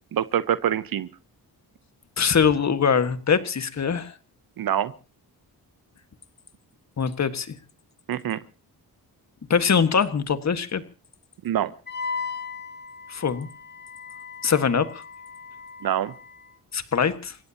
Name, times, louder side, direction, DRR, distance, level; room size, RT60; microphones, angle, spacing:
voice 1, 0.1-1.1 4.6-4.9 8.1-8.4 11.4-11.7 15.8-16.1, right 10 dB, 70° right, 14 dB, 0.8 m, -25 dB
voice 2, 2.2-4.1 7.0-7.6 9.5-10.8 13.1-13.5 14.4-15.0 16.7-17.4, left 6 dB, 45° left, 11 dB, 1.7 m, -22 dB
Wind instrument woodwind instrument, 11.9-16.5, left 5 dB, 25° left, 1.3 m, -37 dB
29.5 x 16.0 x 2.9 m, 0.34 s
cardioid pair, 90°, 37 cm